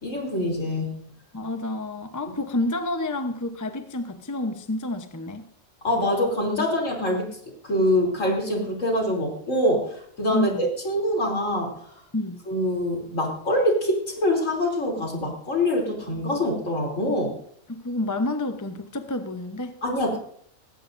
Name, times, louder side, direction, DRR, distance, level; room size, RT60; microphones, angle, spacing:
voice 1, 0.0-0.9 5.8-7.3 7.6-11.9 12.5-17.3 19.8-20.2, left 1 dB, 65° left, 0 dB, 3.7 m, -24 dB
voice 2, 1.3-5.5 10.3-10.7 12.1-12.4 17.7-19.8, left 2 dB, 15° left, 7 dB, 0.8 m, -29 dB
18.5 x 16.5 x 2.6 m, 0.64 s
omnidirectional pair, 1.4 m